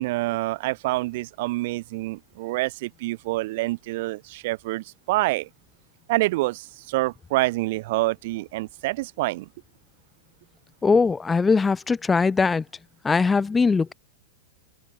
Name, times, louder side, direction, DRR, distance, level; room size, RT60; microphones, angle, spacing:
voice 1, 0.0-5.5 6.1-9.5, right 20 dB, 60° right, 6.1 m, -27 dB
voice 2, 10.8-12.6 13.0-13.9, left 4 dB, 15° left, 1.4 m, -20 dB
open air
hypercardioid pair, 130°, 0 cm